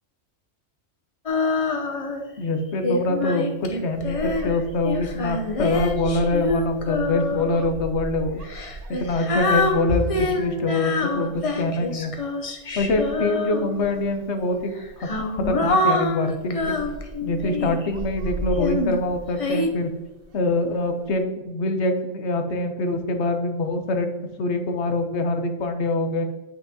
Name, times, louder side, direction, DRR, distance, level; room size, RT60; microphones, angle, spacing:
Female singing, 1.3-2.3 2.8-7.7 8.4-14.0 14.8-17.9 18.6-19.7, left 2 dB, 35° left, 0.6 m, -26 dB
voice 1, 2.4-8.4 8.9-12.1 12.8-14.7 15.3-16.8 17.2-19.9 20.3-24.1 24.4-26.2, left 2 dB, 60° left, 6 dB, 1.1 m, -24 dB
sound 1, 3.9-21.2, right 2 dB, 55° right, 0.7 m, -39 dB
9.0 x 5.8 x 2.8 m, 1.1 s
omnidirectional pair, 1.3 m